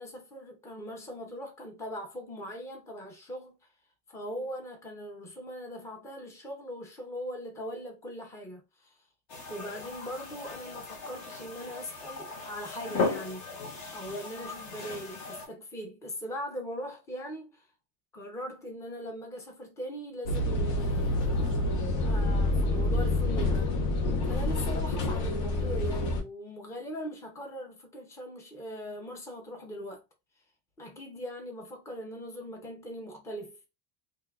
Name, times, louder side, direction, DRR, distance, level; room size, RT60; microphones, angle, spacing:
voice 1, 0.0-3.6 4.1-9.0 9.5-13.6 13.9-17.7 18.1-23.7 24.2-30.0 30.8-33.6, equal, 10° left, 0.5 m, -40 dB
sound 1, 9.3-15.5, left 4 dB, 50° left, 1.0 m, -37 dB
sound 2, 20.3-26.2, left 2 dB, 85° left, 1.1 m, -27 dB
3.6 x 2.7 x 2.3 m
cardioid pair, 170°, 37 cm